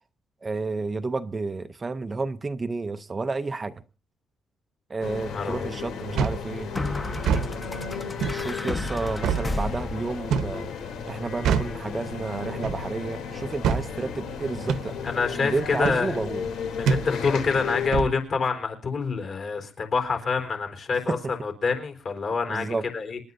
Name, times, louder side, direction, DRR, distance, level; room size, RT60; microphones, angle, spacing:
voice 1, 0.4-3.7 4.9-6.7 8.3-10.7 11.1-14.9 15.3-16.4 21.1-21.2 22.5-22.8, right 3 dB, 20° right, 9 dB, 0.6 m, -31 dB
sound 1, 5.0-17.9, left 6 dB, 85° left, 3.0 m, -34 dB
sound 2, 5.0-5.1 6.8-10.3, left 2 dB, 15° left, 1.0 m, -32 dB
voice 2, 5.3-5.7 15.0-16.1 16.8-21.2 21.4-23.2, left 4 dB, 45° left, 5 dB, 4.0 m, -27 dB
sound 3, 6.2-6.5 7.2-7.5 8.2-8.4 9.2-9.5 10.3-10.6 11.4-11.8 12.6-12.9 13.6-13.9 14.7-14.9 15.8-16.0 16.9-17.1 17.9-18.2, right 6 dB, 75° right, 1.0 m, -24 dB
27.5 x 11.0 x 2.6 m, 0.36 s
cardioid pair, 160°, 0 cm